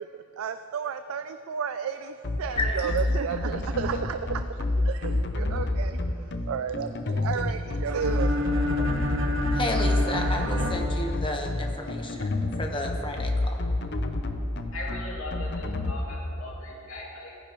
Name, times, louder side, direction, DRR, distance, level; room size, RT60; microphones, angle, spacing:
voice 1, 0.0-8.3, right 7 dB, 85° right, 9 dB, 0.4 m, -33 dB
sound 1, 2.2-15.9, left 2 dB, 55° left, 0.7 m, -28 dB
voice 2, 2.5-2.9 9.5-13.6, left 2 dB, 25° left, 2 dB, 1.1 m, -32 dB
sound 2, 7.8-11.7, equal, 65° right, 1.1 m, -30 dB
voice 3, 14.7-17.4, left 2 dB, 75° left, -4 dB, 2.6 m, -39 dB
17.5 x 10.0 x 3.1 m, 2.8 s
head